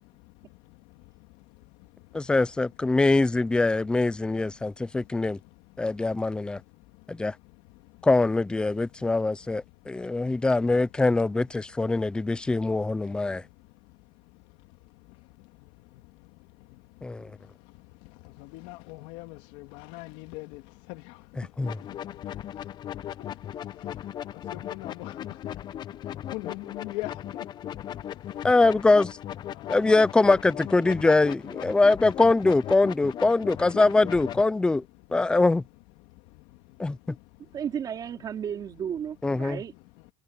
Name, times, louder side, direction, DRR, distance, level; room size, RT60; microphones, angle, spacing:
voice 1, 2.1-5.4 5.8-6.6 7.1-7.3 8.0-13.4 17.0-17.3 21.6-21.7 28.4-29.2 29.7-34.8 35.1-35.6 36.8-37.2 39.2-39.6, left 3 dB, 5° left, 0.5 m, -23 dB
voice 2, 18.4-20.6 20.9-21.0 24.5-25.1 26.3-27.2 29.6-29.9, left 21 dB, 70° left, 2.9 m, -39 dB
sound 1, 21.6-34.4, left 11 dB, 35° left, 0.9 m, -38 dB
voice 3, 37.4-39.7, right 8 dB, 30° right, 3.4 m, -33 dB
cardioid pair, 145°, 13 cm